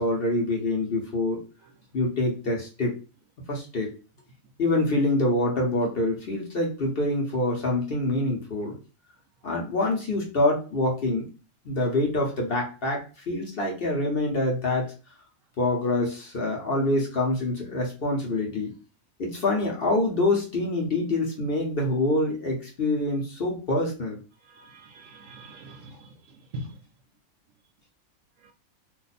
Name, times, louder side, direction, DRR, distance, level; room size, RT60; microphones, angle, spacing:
voice 1, 0.0-1.4 1.9-3.0 3.5-3.9 4.6-8.8 9.4-11.3 11.6-14.9 15.6-18.8 19.2-24.2, left 2 dB, 45° left, 0.9 m, -26 dB
voice 2, 24.5-26.1 26.5-26.8, right 1 dB, 70° right, 0.9 m, -41 dB
2.6 x 2.2 x 4.0 m
omnidirectional pair, 1.5 m